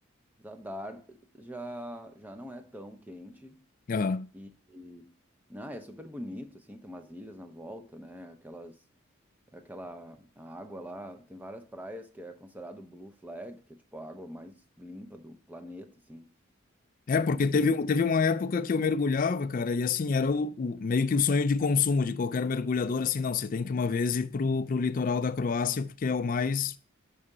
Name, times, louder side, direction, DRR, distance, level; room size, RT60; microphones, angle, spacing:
voice 1, 0.4-3.6 4.3-5.1 5.5-8.8 9.5-16.3 17.1-17.6, equal, 10° right, 0.6 m, -44 dB
voice 2, 3.9-4.3 17.1-26.7, left 5 dB, 40° left, 0.3 m, -27 dB
5.5 x 4.9 x 4.8 m
head